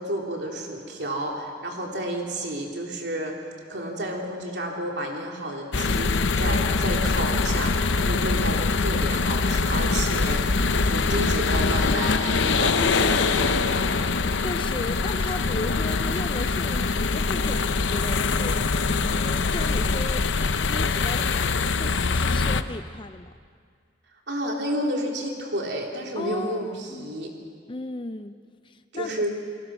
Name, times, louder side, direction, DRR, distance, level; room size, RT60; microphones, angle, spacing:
voice 1, 0.0-3.4 3.7-13.9 24.3-27.3 28.9-29.3, right 1 dB, 65° right, 0 dB, 3.3 m, -31 dB
sound 1, 5.7-22.6, left 4 dB, 85° left, 0.8 m, -23 dB
voice 2, 14.4-20.3 20.7-23.3 26.2-27.2 27.7-28.4 28.6-29.3, left 2 dB, 25° left, 10 dB, 0.5 m, -36 dB
29.0 x 19.0 x 6.1 m, 2.1 s
head